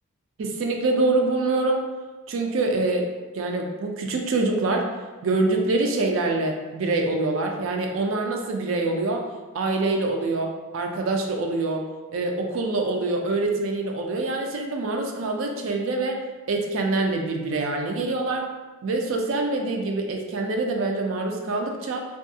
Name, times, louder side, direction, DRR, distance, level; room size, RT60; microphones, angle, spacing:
voice 1, 0.4-1.9 2.3-3.1 3.3-4.9 5.2-9.3 9.5-11.9 12.1-16.2 16.5-18.4 18.8-22.1, right 2 dB, 65° right, 2 dB, 0.4 m, -25 dB
2.6 x 2.3 x 2.7 m, 1.3 s
head